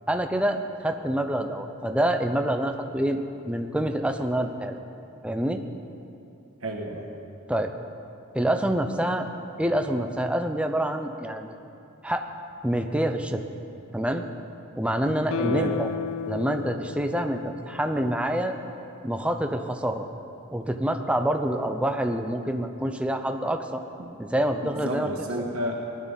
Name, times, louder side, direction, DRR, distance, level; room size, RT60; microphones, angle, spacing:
voice 1, 0.1-4.8 5.2-5.6 7.5-7.7 8.3-9.3 9.6-11.5 12.0-12.3 12.6-13.4 13.9-14.2 14.8-15.9 16.3-18.5 19.0-20.1 20.5-23.8 24.2-25.1, right 1 dB, 5° right, 5 dB, 0.6 m, -26 dB
voice 2, 6.6-7.1 15.4-15.8 24.0-24.1 24.6-25.8, right 1 dB, 80° right, 0 dB, 1.4 m, -31 dB
Guitar, 15.3-18.6 18.9-19.0, left 7 dB, 65° left, 0.3 m, -33 dB
19.0 x 11.5 x 4.0 m, 2.8 s
head